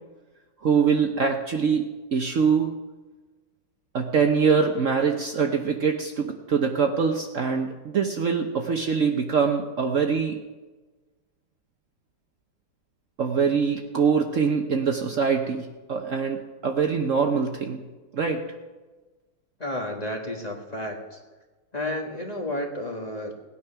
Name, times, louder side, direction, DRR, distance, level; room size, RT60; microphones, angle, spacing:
voice 1, 0.6-1.8 2.1-2.7 3.9-10.4 13.2-17.8 18.1-18.4, right 6 dB, 55° right, 4 dB, 1.1 m, -23 dB
voice 2, 19.6-21.2 21.7-23.4, left 1 dB, 25° left, 1 dB, 1.5 m, -32 dB
18.5 x 9.5 x 5.7 m, 1.3 s
omnidirectional pair, 1.9 m